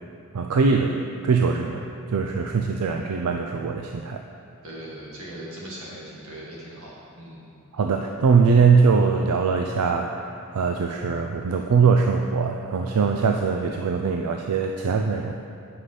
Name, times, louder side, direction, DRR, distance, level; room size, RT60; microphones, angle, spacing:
voice 1, 0.3-4.2 7.7-15.3, right 5 dB, 90° right, 3 dB, 0.4 m, -22 dB
voice 2, 4.6-7.4, right 1 dB, 65° right, -6 dB, 2.1 m, -39 dB
7.9 x 5.6 x 5.0 m, 2.6 s
head